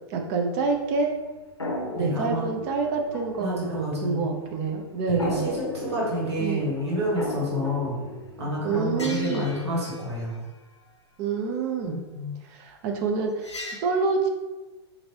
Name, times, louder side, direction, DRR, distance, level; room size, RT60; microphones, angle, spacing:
voice 1, 0.1-1.1 2.0-5.5 6.4-6.6 8.6-9.5 11.2-12.0 12.5-14.3, right 4 dB, 40° right, 2 dB, 0.5 m, -27 dB
sound 1, 0.7-1.3 1.6-4.4 4.9-10.3 13.4-13.8, left 1 dB, 85° left, 0.5 m, -36 dB
voice 2, 1.9-2.5 3.4-4.2 5.0-8.0 8.4-10.4 11.8-12.3, left 1 dB, 75° right, -5 dB, 1.4 m, -29 dB
3.0 x 2.6 x 2.9 m, 1.2 s
figure-of-eight pair, 95°, 14 cm